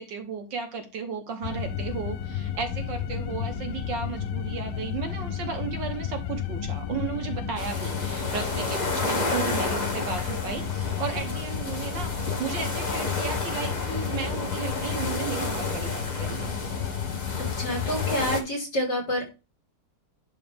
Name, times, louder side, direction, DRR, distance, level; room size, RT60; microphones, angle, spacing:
voice 1, 0.0-16.5, right 6 dB, 60° right, 6 dB, 1.6 m, -34 dB
sound 1, 1.4-18.4, left 8 dB, 70° left, 1.4 m, -32 dB
sound 2, 7.6-18.4, left 2 dB, 25° left, 1.1 m, -32 dB
voice 2, 17.6-19.3, equal, 50° left, -1 dB, 3.9 m, -28 dB
11.0 x 3.9 x 3.4 m, 0.28 s
omnidirectional pair, 2.4 m